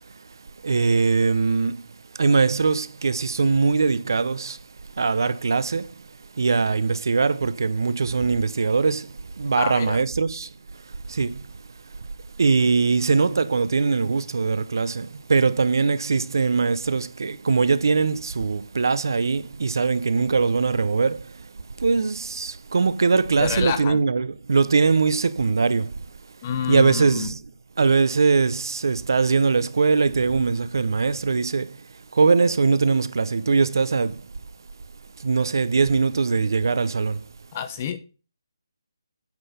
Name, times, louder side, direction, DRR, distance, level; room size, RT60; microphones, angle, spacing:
voice 1, 0.6-1.7 2.2-4.6 5.0-5.9 6.4-9.1 9.4-10.5 11.1-11.4 12.4-21.2 21.8-25.9 26.7-27.4 27.8-31.7 32.2-34.2 35.2-37.2, right 4 dB, 55° right, 0.6 m, -21 dB
voice 2, 9.6-10.0 23.4-24.0 26.4-27.3 37.5-38.0, left 8 dB, 20° left, 0.7 m, -27 dB
8.9 x 5.5 x 5.6 m
hypercardioid pair, 170°, 2 cm